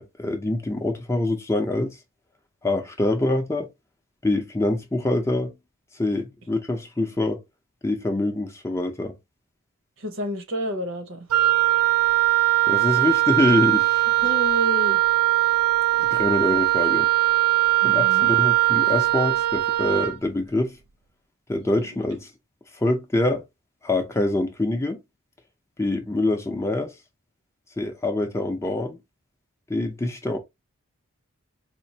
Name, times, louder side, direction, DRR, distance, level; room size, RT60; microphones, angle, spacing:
voice 1, 0.0-2.0 2.6-3.7 4.2-5.5 6.0-7.4 7.8-9.1 12.7-14.1 16.0-17.1 17.8-20.8 21.5-22.3 22.8-23.4 23.8-25.0 25.8-26.9 27.8-29.0 29.7-30.4, left 2 dB, 15° left, 0.5 m, -25 dB
voice 2, 10.0-11.3 14.2-15.0 17.8-18.3, equal, 60° right, 0.9 m, -29 dB
Wind instrument woodwind instrument, 11.3-20.2, right 17 dB, 80° right, 0.4 m, -20 dB
4.2 x 2.4 x 2.8 m
head